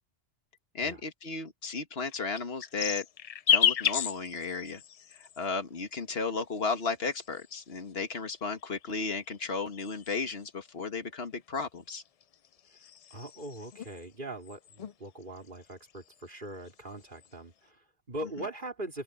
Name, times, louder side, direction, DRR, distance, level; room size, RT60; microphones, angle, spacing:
voice 1, 0.7-3.1 3.5-4.8 5.1-12.0 18.4-18.5, left 4 dB, 60° left, 2.0 m, -34 dB
sound 1, 2.0-5.5 6.4-7.8 8.6-10.5 11.9-14.0 14.4-14.9 15.2-16.3 16.7-17.3, left 9 dB, 75° left, 0.3 m, -32 dB
voice 2, 13.1-19.0, right 1 dB, 45° right, 3.7 m, -41 dB
open air
omnidirectional pair, 1.2 m